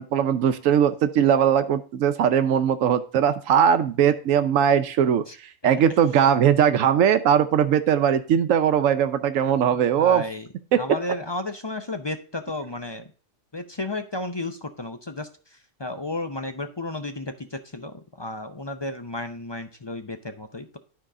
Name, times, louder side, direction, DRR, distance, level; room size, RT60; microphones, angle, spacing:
voice 1, 0.0-5.2 5.6-10.2 10.7-10.8, right 8 dB, 85° right, 11 dB, 1.0 m, -20 dB
voice 2, 9.7-10.5 10.8-13.0 13.5-15.3 15.8-20.8, left 2 dB, 30° left, 8 dB, 0.5 m, -33 dB
11.5 x 4.8 x 3.6 m, 0.40 s
omnidirectional pair, 1.3 m